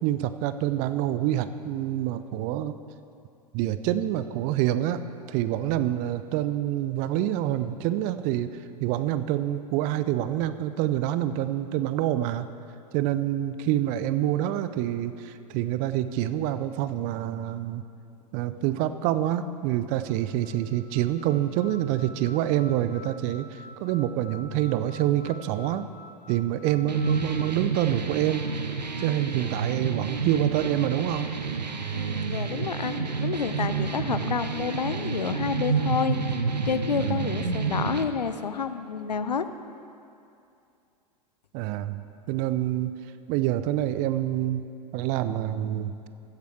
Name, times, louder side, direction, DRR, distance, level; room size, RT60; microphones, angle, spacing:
voice 1, 0.0-2.7 3.5-8.5 8.8-12.5 12.9-17.8 18.3-25.9 26.3-28.4 29.0-31.3 33.9-34.3 37.0-37.3 41.5-43.0 43.3-44.6 44.9-46.1, right 12 dB, 40° right, 12 dB, 0.5 m, -27 dB
sound 1, 15.0-15.2 16.2-16.4 17.2-17.3 18.2-18.3 19.3-19.4 19.5-27.5, left 2 dB, 45° left, 1.8 m, -49 dB
sound 2, 26.9-38.0, right 5 dB, 85° right, 0.7 m, -29 dB
voice 2, 31.9-36.2 36.6-39.5, left 6 dB, 80° left, 11 dB, 0.6 m, -29 dB
15.5 x 8.2 x 4.6 m, 2.6 s
figure-of-eight pair, 95°, 21 cm